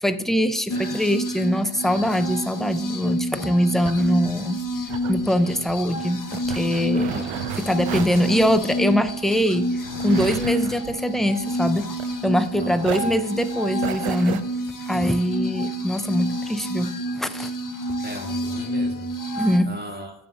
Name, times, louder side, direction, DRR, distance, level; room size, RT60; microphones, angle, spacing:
voice 1, 0.0-4.6 5.1-7.3 7.6-9.7 10.0-11.9 12.2-14.4 14.9-17.5 19.4-19.7, equal, ahead, 10 dB, 0.5 m, -23 dB
sound 1, 0.7-19.6, equal, 40° left, 0.8 m, -29 dB
voice 2, 0.7-1.0 6.9-7.4 12.6-13.1 18.0-19.4 19.6-20.1, right 1 dB, 20° right, 1 dB, 1.8 m, -38 dB
sound 2, 3.4-12.5 12.8-14.4, right 10 dB, 85° right, 0.6 m, -34 dB
9.3 x 3.4 x 6.6 m, 0.78 s
cardioid pair, 55°, 49 cm